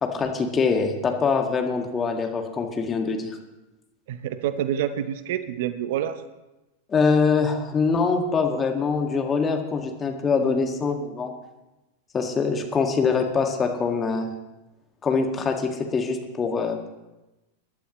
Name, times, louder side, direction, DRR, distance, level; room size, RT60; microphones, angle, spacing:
voice 1, 0.0-3.4 6.9-11.3 12.1-14.3 15.0-16.9, left 5 dB, 25° left, 4 dB, 1.8 m, -24 dB
voice 2, 4.1-6.2, right 10 dB, 60° right, 12 dB, 0.7 m, -27 dB
21.5 x 11.5 x 3.1 m, 1.0 s
hypercardioid pair, 95°, 0 cm